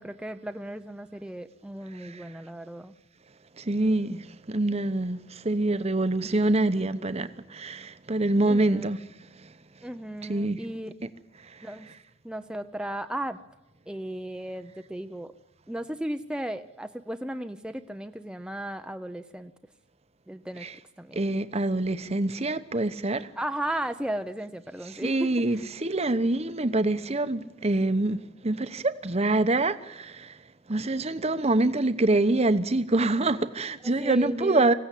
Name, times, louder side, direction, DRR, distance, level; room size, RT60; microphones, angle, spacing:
voice 1, 0.0-2.9 8.5-8.9 9.8-10.9 11.6-11.9 12.2-13.4 13.9-15.3 15.7-19.5 20.3-20.7 21.0-21.2 23.4-25.1 34.0-34.7, right 1 dB, 5° right, 0.7 m, -35 dB
voice 2, 3.7-4.2 4.5-5.2 5.4-9.0 10.3-10.6 20.6-20.7 21.2-23.3 25.0-28.2 28.4-30.1 30.7-34.7, right 2 dB, 30° right, 0.9 m, -25 dB
25.0 x 16.0 x 8.4 m
head